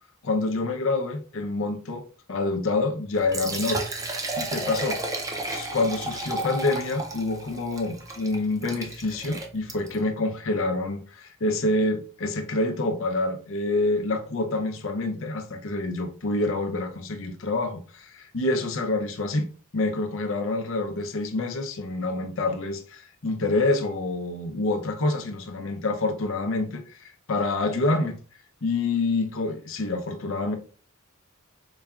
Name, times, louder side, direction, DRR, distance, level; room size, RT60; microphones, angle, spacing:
voice 1, 0.2-3.8 4.4-5.0 5.5-28.2 28.6-30.5, left 2 dB, 65° left, 0.7 m, -27 dB
Liquid, 3.1-10.0, right 2 dB, 15° right, 0.5 m, -33 dB
4.0 x 3.5 x 2.3 m
head